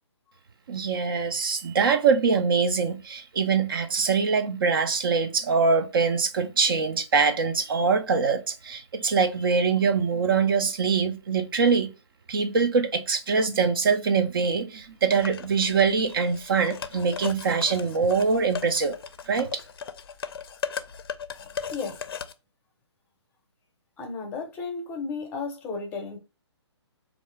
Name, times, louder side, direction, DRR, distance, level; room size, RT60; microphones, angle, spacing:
voice 1, 0.7-11.9 12.3-19.0 19.3-19.6, right 5 dB, 50° right, 0.4 m, -23 dB
sound 1, 15.1-22.3, left 7 dB, 55° left, 0.4 m, -37 dB
voice 2, 24.0-26.2, left 4 dB, 15° left, 0.6 m, -33 dB
3.4 x 2.5 x 3.2 m
figure-of-eight pair, 135°, 15 cm